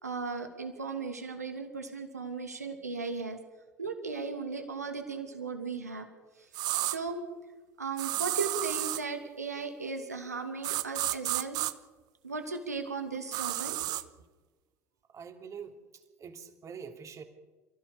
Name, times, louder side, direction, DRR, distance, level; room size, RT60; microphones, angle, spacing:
voice 1, 0.0-3.4 3.8-6.1 6.4-6.5 6.8-7.2 7.8-11.6 12.2-13.9, right 4 dB, 85° right, 6 dB, 2.4 m, -36 dB
sound 1, 6.5-7.0 8.0-9.0 10.6-11.7 13.3-14.0, right 16 dB, 55° right, 1.2 m, -31 dB
voice 2, 15.1-17.2, right 6 dB, 40° right, 5 dB, 3.1 m, -45 dB
29.0 x 15.5 x 7.1 m, 1.3 s
figure-of-eight pair, 60°, 8 cm